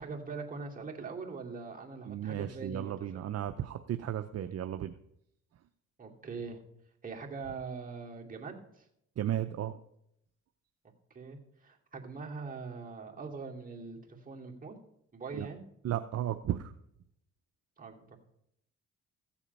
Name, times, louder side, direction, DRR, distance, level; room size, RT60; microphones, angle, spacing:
voice 1, 0.0-3.3 6.0-6.6 7.0-8.9 11.1-14.8 15.1-15.6 17.8-18.2, right 4 dB, 30° right, -1 dB, 2.5 m, -42 dB
voice 2, 2.1-4.9 9.2-9.8 15.3-15.5 15.8-16.7, right 11 dB, 55° right, 9 dB, 0.6 m, -34 dB
15.0 x 7.2 x 5.4 m, 0.76 s
cardioid pair, 90°, 30 cm